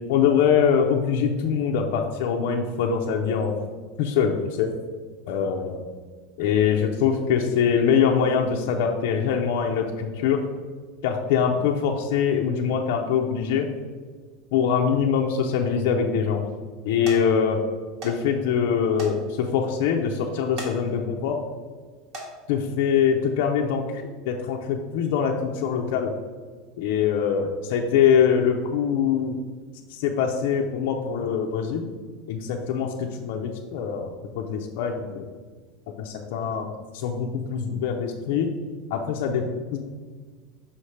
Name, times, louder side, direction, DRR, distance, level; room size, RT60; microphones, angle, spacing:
voice 1, 0.1-3.6 4.0-4.7 5.3-5.8 6.4-10.4 11.0-13.7 14.5-16.4 16.8-17.6 18.0-21.4 22.5-26.1 26.8-29.4 29.9-31.9 32.3-34.1 34.3-35.2 36.0-36.7 36.9-38.5 38.9-39.8, left 7 dB, 70° left, 1 dB, 0.6 m, -23 dB
sound 1, 16.7-16.8 17.0-17.2 18.0-18.2 18.5-18.6 19.0-19.1 19.6-19.7 20.4-20.7 21.2-21.5 22.0-22.3 23.2-23.4 23.9-24.0, right 1 dB, 50° right, 1.8 m, -37 dB
5.6 x 3.3 x 5.6 m, 1.5 s
supercardioid pair, 145°, 0 cm